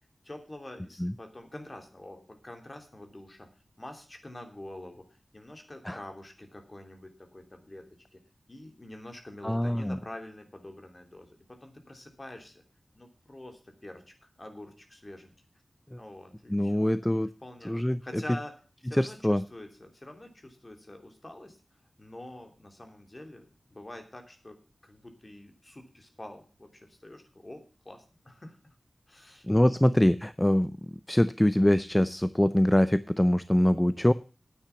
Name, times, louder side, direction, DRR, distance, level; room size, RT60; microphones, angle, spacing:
voice 1, 0.2-3.5 3.8-8.2 8.5-12.6 12.9-14.0 14.4-15.3 16.0-16.9 17.4-17.8 18.0-18.5 18.8-21.6 22.0-28.6 29.1-29.8, left 1 dB, 30° left, 5 dB, 3.0 m, -46 dB
voice 2, 9.4-10.0 15.9-16.0 16.5-17.3 17.6-18.0 18.9-19.4 29.5-34.1, left 1 dB, 10° left, 14 dB, 0.5 m, -24 dB
10.5 x 8.8 x 7.0 m, 0.36 s
wide cardioid pair, 90°, 0 cm